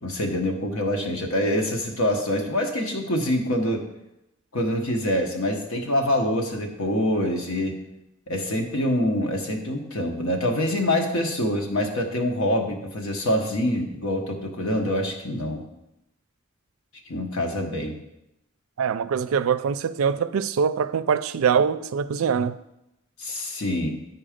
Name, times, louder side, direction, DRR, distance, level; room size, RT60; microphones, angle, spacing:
voice 1, 0.0-3.8 4.5-7.8 8.3-15.6 17.1-17.9 23.2-23.9, left 1 dB, 80° left, 1.3 m, -25 dB
voice 2, 18.8-22.6, right 6 dB, 90° right, 0.4 m, -23 dB
10.0 x 4.4 x 5.1 m
head